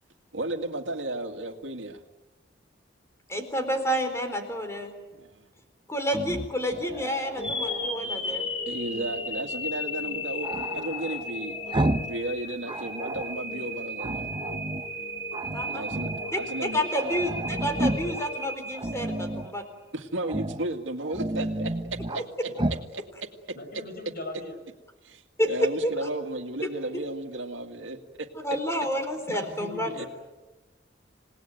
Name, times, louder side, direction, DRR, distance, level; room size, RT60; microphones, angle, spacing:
voice 1, 0.3-2.0 5.1-5.4 8.7-11.6 12.1-14.3 15.6-16.8 19.9-21.7 22.1-22.2 22.9-23.0 25.0-28.3 29.9-30.0, right 2 dB, 85° right, 5 dB, 2.1 m, -34 dB
voice 2, 3.3-4.9 5.9-8.5 15.5-15.8 16.3-19.6 25.4-26.1 28.4-30.1, equal, 15° left, 6 dB, 4.1 m, -29 dB
Growling, 6.1-8.1 10.4-12.2 12.5-13.4 14.0-14.9 15.3-16.3 16.6-16.7 16.9-18.3 18.7-19.5 20.2-20.7 21.0-22.2 22.6-22.9, right 1 dB, 25° right, 0.9 m, -32 dB
sound 1, 7.4-19.5, left 2 dB, 30° left, 2.6 m, -35 dB
voice 3, 23.5-24.6 29.5-30.1, left 2 dB, 55° left, 6 dB, 6.0 m, -39 dB
28.0 x 19.0 x 9.2 m, 1.1 s
head